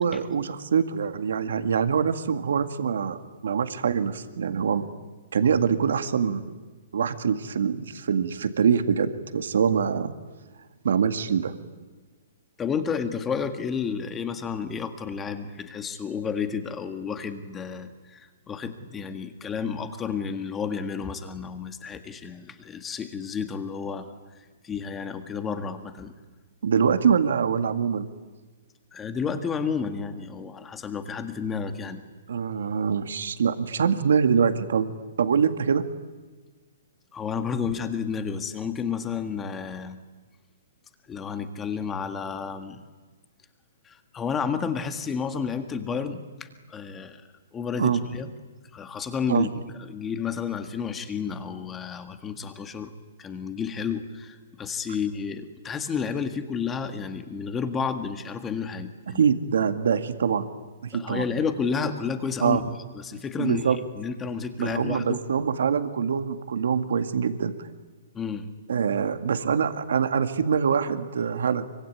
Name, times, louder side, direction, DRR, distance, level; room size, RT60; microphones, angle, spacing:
voice 1, 0.0-4.8 5.3-6.5 6.9-10.2 10.8-11.5 26.6-28.1 32.3-34.9 35.2-35.8 47.8-48.0 49.3-49.5 59.1-60.5 60.8-61.3 62.4-62.6 63.4-63.8 64.6-67.5 68.7-71.6, right 6 dB, 75° right, 9 dB, 2.0 m, -24 dB
voice 2, 12.6-24.1 24.6-26.1 28.9-32.0 37.1-40.0 41.1-42.8 43.9-47.2 47.5-48.3 48.7-52.9 53.2-59.2 60.9-62.6 62.9-63.7 64.0-65.3 68.1-68.5, left 6 dB, 10° left, 8 dB, 1.7 m, -31 dB
25.0 x 24.5 x 9.5 m, 1.3 s
hypercardioid pair, 165°, 0 cm